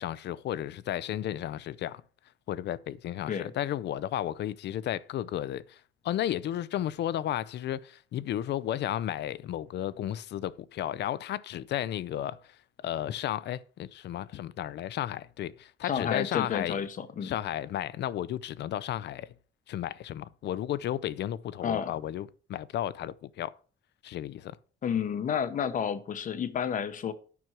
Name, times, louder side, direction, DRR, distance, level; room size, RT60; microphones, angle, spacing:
voice 1, 0.0-2.0 2.5-16.8 17.2-19.3 19.7-23.5 24.0-24.6, left 12 dB, 60° left, 0.5 m, -33 dB
voice 2, 15.8-17.3 21.6-21.9 24.8-27.1, left 7 dB, 40° left, 0.9 m, -30 dB
9.4 x 6.1 x 6.0 m
cardioid pair, 175°, 20 cm